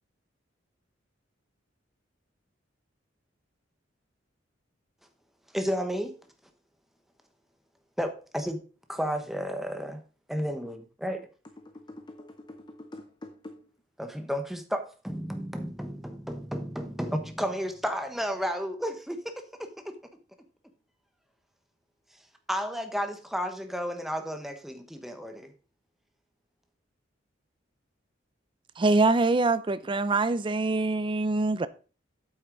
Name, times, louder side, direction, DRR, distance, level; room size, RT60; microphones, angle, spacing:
voice 1, 5.5-6.2 8.0-8.6 8.9-10.0 10.3-11.3 14.0-19.9 22.1-22.2 22.5-25.5, equal, ahead, 1.0 m, -32 dB
voice 2, 11.6-13.6, left 1 dB, 25° left, 0.7 m, -45 dB
voice 3, 28.8-31.7, right 3 dB, 25° right, 0.4 m, -24 dB
8.7 x 7.9 x 3.9 m
head